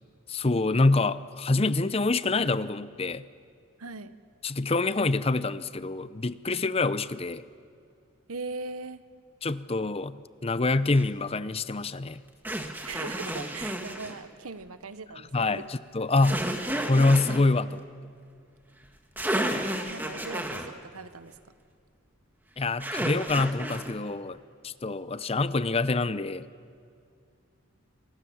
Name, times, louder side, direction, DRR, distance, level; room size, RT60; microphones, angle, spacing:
voice 1, 0.3-3.2 4.4-7.4 9.4-12.2 15.3-16.5 16.9-17.8 22.6-24.4 24.6-26.5, left 3 dB, 25° left, 15 dB, 0.6 m, -26 dB
voice 2, 3.8-4.1 8.3-9.0 12.8-15.6 19.3-19.5 19.9-21.4, right 3 dB, 90° right, 12 dB, 1.2 m, -39 dB
sound 1, 10.9-11.1 12.5-14.2 16.2-17.4 18.9-19.0 19.2-20.7 22.8-23.9, right 1 dB, 10° right, 1.7 m, -31 dB
28.5 x 24.5 x 7.3 m, 2.3 s
head